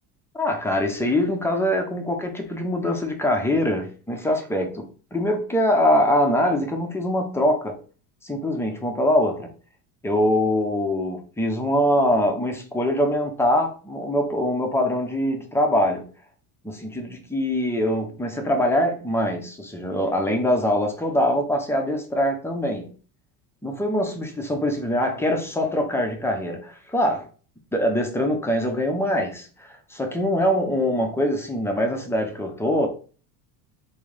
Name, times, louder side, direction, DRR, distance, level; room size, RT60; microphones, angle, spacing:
voice 1, 0.3-7.8 8.2-9.5 10.0-16.1 16.6-22.9 23.6-27.3 27.7-32.9, left 1 dB, 5° left, 0.5 m, -23 dB
3.7 x 2.7 x 3.2 m
cardioid pair, 130°, 44 cm